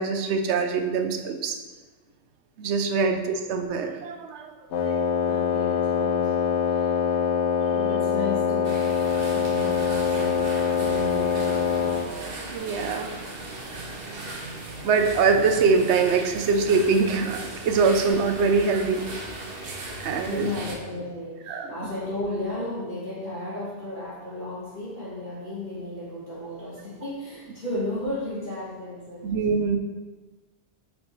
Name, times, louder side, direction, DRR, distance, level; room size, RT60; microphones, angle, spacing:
voice 1, 0.0-1.6 2.6-4.5 4.9-5.0 7.6-7.8 12.5-13.1 14.8-19.0 20.0-20.5 21.5-21.9 29.2-29.8, right 4 dB, 80° right, 5 dB, 0.9 m, -23 dB
Wind instrument woodwind instrument, 4.7-12.1, left 6 dB, 85° left, 1.0 m, -24 dB
voice 2, 5.2-6.4 6.7-7.2 7.7-9.0 9.3-12.0 20.2-29.3, left 2 dB, 45° left, -9 dB, 1.7 m, -34 dB
sound 1, 8.6-20.8, right 2 dB, 60° right, 1.1 m, -37 dB
7.3 x 4.6 x 3.1 m, 1.3 s
omnidirectional pair, 1.1 m